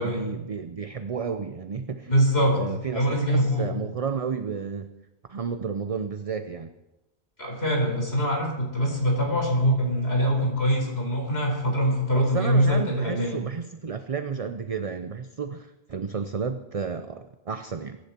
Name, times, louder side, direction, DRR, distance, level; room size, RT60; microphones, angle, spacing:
voice 1, 0.0-2.1 2.5-4.9 5.3-6.7 12.1-18.0, right 5 dB, 40° right, 9 dB, 0.6 m, -32 dB
voice 2, 2.1-2.6 2.9-3.7 7.4-13.4, equal, 65° left, 0 dB, 4.6 m, -23 dB
24.0 x 10.5 x 4.4 m, 0.98 s
omnidirectional pair, 1.1 m